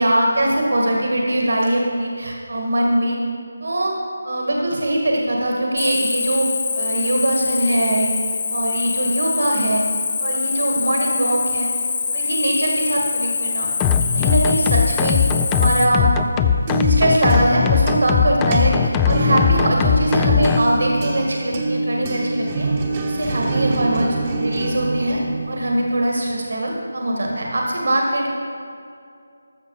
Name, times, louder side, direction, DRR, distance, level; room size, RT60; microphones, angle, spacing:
voice 1, 0.0-3.2 3.6-4.0 4.2-6.5 6.8-8.1 8.5-9.8 10.2-11.7 12.1-13.7 14.1-15.2 15.5-16.1 16.8-22.7 23.0-24.2 24.4-25.2 25.5-28.3, right 1 dB, 70° right, -1 dB, 1.9 m, -21 dB
Cricket, 5.8-15.8, left 5 dB, 35° left, 1.0 m, -25 dB
sound 1, 13.8-20.6, left 7 dB, 15° left, 0.3 m, -19 dB
sound 2, 16.3-26.0, right 2 dB, 25° right, 1.0 m, -25 dB
14.0 x 6.0 x 6.4 m, 2.4 s
figure-of-eight pair, 165°, 0 cm